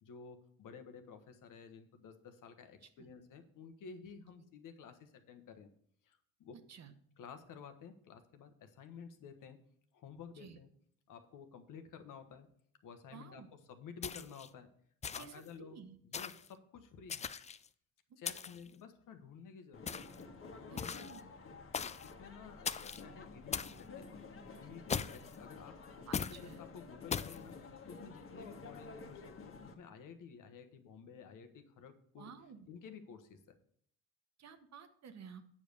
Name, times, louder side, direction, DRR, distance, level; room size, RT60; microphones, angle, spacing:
voice 1, 0.0-5.7 6.0-6.6 7.2-9.6 9.9-10.7 11.1-12.5 12.8-14.7 15.1-17.3 18.2-20.1 20.5-20.9 21.6-24.1 24.6-32.3 32.7-33.6, left 6 dB, 65° left, 9 dB, 1.2 m, -53 dB
voice 2, 2.8-3.1 6.7-6.9 10.4-10.6 13.1-13.5 15.2-15.3 15.6-16.0 18.3-18.4 20.7-21.3 26.1-26.6 32.2-32.7 34.4-35.4, right 7 dB, 50° right, 9 dB, 1.1 m, -53 dB
sound 1, 14.0-14.5 15.0-15.5 16.1-16.5 17.1-17.7 18.2-18.7 19.9-20.2 20.8-21.2 21.7-22.1 22.6-23.0 23.5-23.8 24.9-25.3 26.1-26.4 27.1-27.4, left 6 dB, 20° left, 0.3 m, -39 dB
sound 2, 19.7-29.7, left 4 dB, 35° left, 1.5 m, -51 dB
8.6 x 5.3 x 6.6 m, 0.64 s
supercardioid pair, 80°, 35 cm